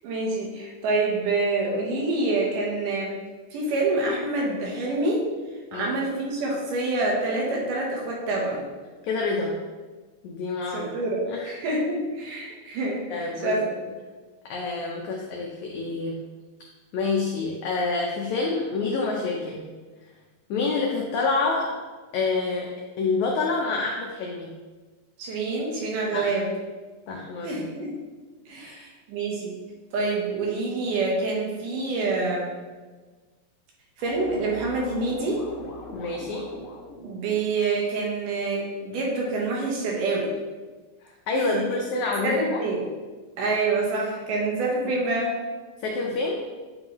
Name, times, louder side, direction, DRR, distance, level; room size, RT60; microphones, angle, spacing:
voice 1, 0.0-3.2 3.5-5.3 5.7-8.7 10.7-13.7 25.2-26.5 27.4-27.9 28.5-29.6 29.9-32.5 34.0-35.4 37.0-40.3 41.4-41.6 42.2-42.8 43.4-45.3, right 2 dB, 70° right, -2 dB, 2.5 m, -26 dB
voice 2, 9.0-9.6 10.2-10.9 11.3-11.5 13.1-13.5 14.5-16.2 16.9-19.7 20.5-21.7 22.1-24.5 26.1-26.3 27.1-27.6 28.6-28.9 35.9-36.5 41.0-42.6 45.8-46.4, left 3 dB, 85° left, -1 dB, 1.6 m, -27 dB
sound 1, 34.0-37.1, left 2 dB, 70° left, 1.6 m, -40 dB
9.2 x 3.8 x 3.0 m, 1.3 s
omnidirectional pair, 4.1 m